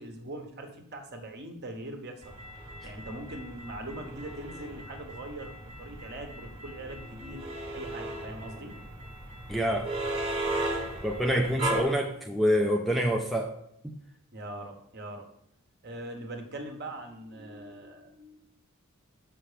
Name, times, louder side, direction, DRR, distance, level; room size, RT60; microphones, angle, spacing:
voice 1, 0.0-2.4 2.8-7.4 7.7-8.7 14.3-15.3 15.8-18.4, right 1 dB, 50° right, 3 dB, 1.2 m, -41 dB
sound 1, 2.2-11.8, right 2 dB, 25° right, 1.3 m, -36 dB
voice 2, 9.5-9.9 11.0-13.6 13.8-13.9, equal, ahead, 2 dB, 0.5 m, -26 dB
6.7 x 5.7 x 5.0 m, 0.73 s
head